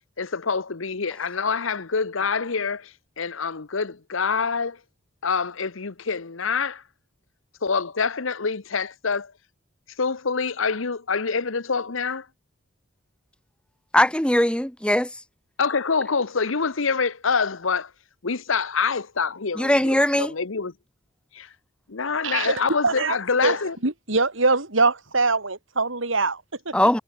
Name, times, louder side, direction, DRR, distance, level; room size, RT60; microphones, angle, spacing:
voice 1, 0.2-4.8 5.2-6.8 7.6-9.3 10.0-12.3 15.6-17.9 18.2-20.7 21.3-21.5 21.9-23.8, left 5 dB, 80° left, 1.0 m, -26 dB
voice 2, 13.9-15.1 19.6-20.3 26.7-27.0, left 1 dB, 5° left, 1.1 m, -20 dB
voice 3, 22.2-23.2 23.4-23.6 23.8-26.7, right 3 dB, 75° right, 3.3 m, -23 dB
head